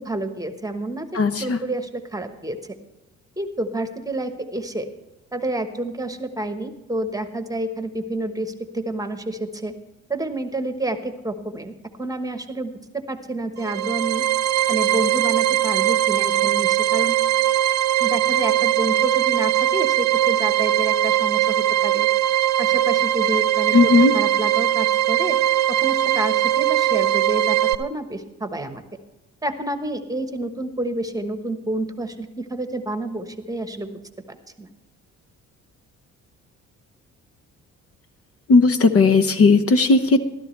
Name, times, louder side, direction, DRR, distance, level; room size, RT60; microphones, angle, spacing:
voice 1, 0.0-1.1 1.4-2.7 3.4-4.9 5.3-9.7 10.1-14.2 14.7-17.2 18.0-22.1 22.6-23.7 24.1-25.4 25.7-28.8 29.4-33.9 34.3-34.7, right 2 dB, 10° right, 8 dB, 1.2 m, -29 dB
voice 2, 1.1-1.6 23.7-24.1 38.5-40.3, left 3 dB, 50° left, 10 dB, 0.9 m, -16 dB
sound 1, 13.6-27.7, right 13 dB, 70° right, 0.6 m, -20 dB
14.0 x 13.0 x 3.3 m, 0.99 s
cardioid pair, 90°, 30 cm